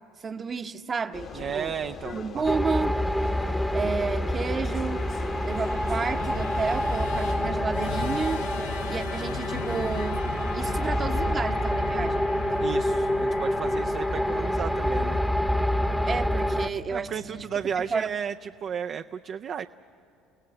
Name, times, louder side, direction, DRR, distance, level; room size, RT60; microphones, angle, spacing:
voice 1, 0.2-1.7 2.1-2.9 3.7-5.1 5.4-8.5 8.9-10.2 10.5-12.2 16.1-17.4 17.8-18.1, right 5 dB, 35° right, 9 dB, 0.9 m, -31 dB
Vehicle, 1.1-8.0, left 6 dB, 50° left, 1.3 m, -40 dB
voice 2, 1.3-2.4 12.6-15.2 16.9-19.7, right 8 dB, 50° right, 7 dB, 0.4 m, -33 dB
sound 1, 2.4-16.7, equal, 5° left, 0.9 m, -27 dB
Musical instrument, 2.8-18.1, left 5 dB, 85° left, 1.1 m, -39 dB
29.5 x 17.5 x 7.7 m, 2.6 s
hypercardioid pair, 70°, 0 cm